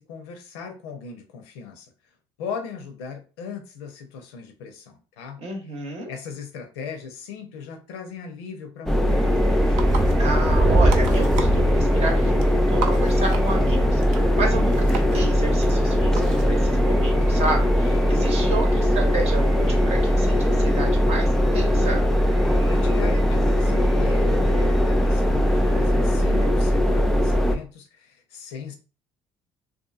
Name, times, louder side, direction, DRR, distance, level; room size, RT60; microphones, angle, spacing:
voice 1, 0.0-1.9 2.4-5.4 5.7-5.8 6.1-9.8 17.8-18.2 22.7-28.8, left 6 dB, 85° left, 6 dB, 0.5 m, -38 dB
voice 2, 5.4-6.1 10.2-22.0, right 3 dB, 55° right, 3 dB, 0.8 m, -31 dB
sound 1, 8.9-27.6, equal, 5° left, 0.4 m, -20 dB
sound 2, 9.1-26.5, right 1 dB, 25° right, 0.7 m, -31 dB
sound 3, 9.3-16.4, right 5 dB, 70° right, 0.5 m, -36 dB
2.7 x 2.4 x 2.3 m, 0.35 s
hypercardioid pair, 60°, 13 cm